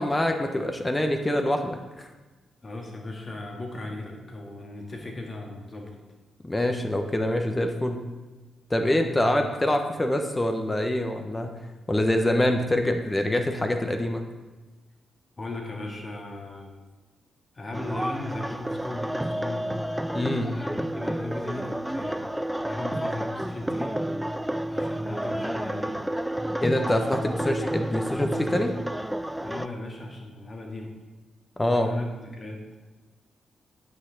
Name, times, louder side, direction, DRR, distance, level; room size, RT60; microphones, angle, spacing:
voice 1, 0.0-2.1 6.4-8.0 8.7-11.6 11.9-14.3 20.1-20.5 26.6-28.7 31.6-31.9, left 1 dB, 20° left, 5 dB, 1.1 m, -25 dB
voice 2, 2.6-5.9 9.1-9.5 15.4-16.8 17.5-19.7 20.3-22.4 22.6-24.1 24.7-26.0 29.4-30.9 31.6-32.6, left 2 dB, 40° left, 0 dB, 2.1 m, -37 dB
sound 1, 17.7-29.7, right 1 dB, 5° right, 0.4 m, -30 dB
9.4 x 5.9 x 4.0 m, 1.2 s
supercardioid pair, 45°, 0 cm